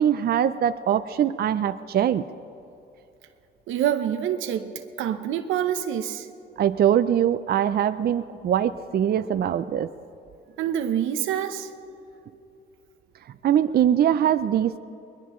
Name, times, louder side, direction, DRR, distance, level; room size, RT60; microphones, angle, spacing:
voice 1, 0.0-2.2 6.6-9.9 13.4-14.8, right 10 dB, 50° right, 11 dB, 0.5 m, -22 dB
voice 2, 3.7-4.7 5.0-6.3 10.6-11.7, right 10 dB, 90° right, 9 dB, 0.9 m, -26 dB
21.5 x 20.5 x 3.1 m, 2.7 s
cardioid pair, 90°, 20 cm